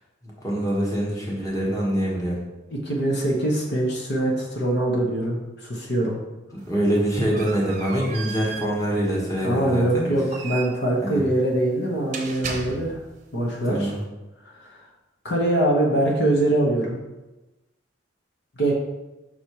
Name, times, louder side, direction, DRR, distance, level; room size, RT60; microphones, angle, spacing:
voice 1, 0.2-2.4 6.7-10.1 11.0-11.2 13.6-14.0, right 1 dB, 15° left, -4 dB, 1.3 m, -24 dB
voice 2, 2.8-6.2 9.4-13.0 13.3-13.9 14.4-14.8 15.2-17.0 18.6-18.7, right 1 dB, 55° left, -2 dB, 1.1 m, -23 dB
sound 1, 6.6-13.2, right 5 dB, 40° right, 0.8 m, -37 dB
5.8 x 4.2 x 4.7 m, 1.1 s
head